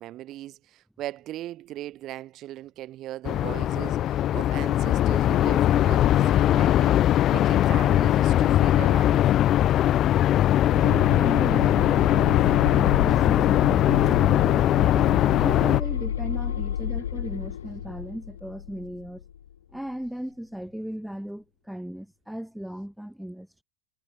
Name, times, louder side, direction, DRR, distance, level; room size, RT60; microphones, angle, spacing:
voice 1, 0.0-7.0 7.3-9.2, right 14 dB, 35° right, 3.3 m, -38 dB
sound 1, 3.2-15.8, left 12 dB, 30° left, 0.4 m, -21 dB
voice 2, 9.5-12.4 12.7-15.1 15.4-19.2 19.7-23.6, equal, ahead, 2.0 m, -37 dB
sound 2, 10.7-19.5, left 10 dB, 65° left, 0.8 m, -30 dB
figure-of-eight pair, 90°, 0 cm